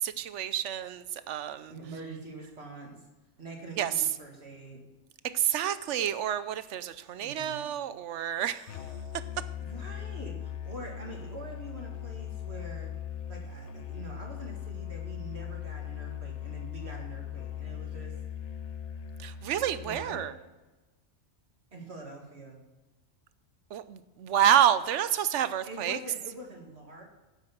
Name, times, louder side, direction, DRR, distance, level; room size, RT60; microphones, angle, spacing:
voice 1, 0.0-1.7 3.8-4.0 5.3-8.7 19.2-20.3 23.7-26.0, right 10 dB, 85° right, 13 dB, 1.0 m, -28 dB
voice 2, 1.7-3.0 3.4-4.8 7.2-7.6 9.6-12.9 13.3-18.1 19.8-20.3 21.7-22.6 25.6-27.0, right 2 dB, 65° right, 0 dB, 2.3 m, -44 dB
Musical instrument, 8.7-20.4, left 9 dB, 75° left, 1.1 m, -39 dB
9.4 x 8.3 x 5.9 m, 1.1 s
omnidirectional pair, 1.2 m